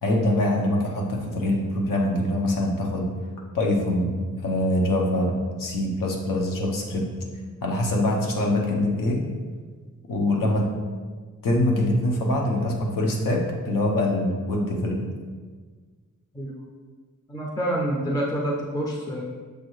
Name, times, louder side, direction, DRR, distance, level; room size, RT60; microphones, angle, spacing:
voice 1, 0.0-3.1 3.5-5.3 5.6-7.1 7.6-9.2 10.1-10.7 11.4-15.0, left 1 dB, 85° left, -1 dB, 0.8 m, -24 dB
voice 2, 17.3-19.2, right 1 dB, 10° left, -2 dB, 0.4 m, -27 dB
6.5 x 2.4 x 3.0 m, 1.5 s
wide cardioid pair, 140°, 32 cm